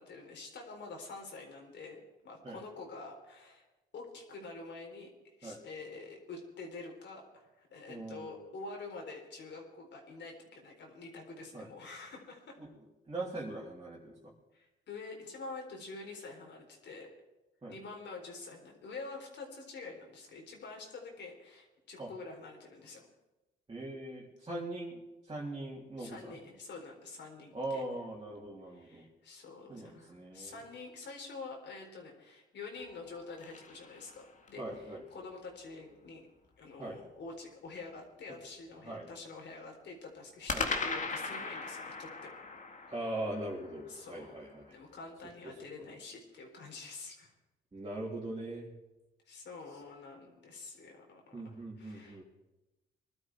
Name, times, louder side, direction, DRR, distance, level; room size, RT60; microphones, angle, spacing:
voice 1, 0.0-3.7 3.9-12.6 14.5-17.1 17.7-23.1 26.0-28.1 28.7-36.2 36.6-42.3 42.8-43.0 43.7-44.4 44.7-47.3 49.3-52.2, left 3 dB, 65° left, 1 dB, 3.9 m, -47 dB
voice 2, 7.9-8.4 11.5-11.7 12.6-12.7 13.1-14.3 17.6-17.8 22.0-22.1 23.7-25.0 25.3-26.4 27.5-29.0 29.7-30.6 34.6-35.0 36.8-37.0 38.8-39.1 40.5-40.7 42.9-44.8 47.7-48.7 51.3-52.2, right 1 dB, 25° right, -6 dB, 3.3 m, -41 dB
sound 1, 32.8-34.7 40.5-44.8, left 4 dB, 40° left, 1.9 m, -39 dB
20.5 x 12.0 x 4.6 m, 1.1 s
cardioid pair, 90°, 20 cm